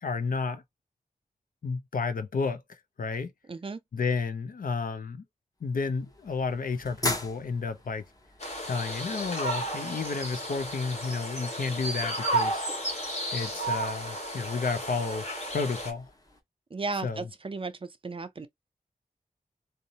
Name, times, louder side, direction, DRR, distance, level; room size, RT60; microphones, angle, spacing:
voice 1, 0.0-0.6 1.6-3.3 3.9-5.2 5.6-8.1 8.6-12.6 13.3-16.1 17.0-17.3, left 4 dB, 70° left, 0.5 m, -31 dB
voice 2, 3.5-3.8 16.7-18.5, right 3 dB, 35° right, 0.4 m, -35 dB
sound 1, 5.6-16.4, left 1 dB, 25° left, 0.9 m, -42 dB
sound 2, 8.4-15.9, right 1 dB, 50° left, 1.0 m, -33 dB
2.7 x 2.0 x 2.7 m
cardioid pair, 40°, 15 cm